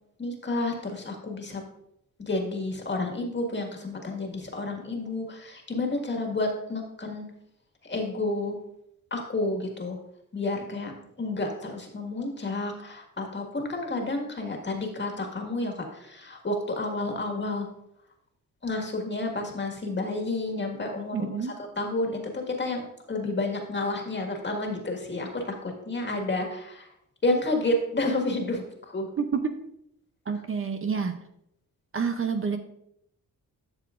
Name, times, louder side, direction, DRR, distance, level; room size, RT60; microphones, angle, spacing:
voice 1, 0.2-1.6 2.2-7.3 7.8-8.6 9.1-10.0 10.3-10.9 11.2-17.7 18.6-21.3 21.8-26.9 27.2-29.1, left 2 dB, 30° left, 2 dB, 1.8 m, -30 dB
voice 2, 21.1-21.5 29.2-29.4 30.3-31.1 31.9-32.6, right 6 dB, 40° right, 6 dB, 0.7 m, -28 dB
11.5 x 6.7 x 2.5 m, 0.76 s
cardioid pair, 105°, 34 cm